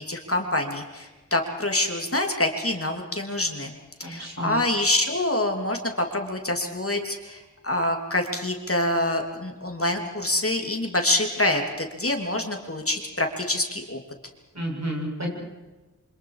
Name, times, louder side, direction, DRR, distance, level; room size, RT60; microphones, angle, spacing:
voice 1, 0.0-3.7 4.0-14.0, left 1 dB, 45° left, 3 dB, 3.1 m, -26 dB
voice 2, 4.0-4.6 14.5-15.3, right 1 dB, 60° right, -1 dB, 7.9 m, -31 dB
27.5 x 26.0 x 5.0 m, 1.2 s
wide cardioid pair, 50°, 31 cm